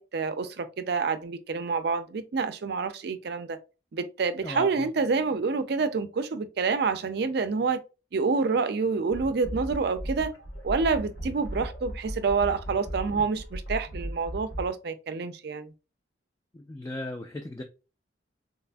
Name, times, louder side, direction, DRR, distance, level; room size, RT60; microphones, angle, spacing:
voice 1, 0.0-3.6 3.9-7.8 8.1-10.3 10.6-15.7, right 4 dB, 60° right, 0.4 m, -28 dB
voice 2, 4.4-4.9 16.5-17.6, left 1 dB, 20° left, 0.3 m, -37 dB
sound 1, 9.1-14.7, right 1 dB, 70° left, 1.1 m, -37 dB
4.0 x 2.5 x 2.2 m
head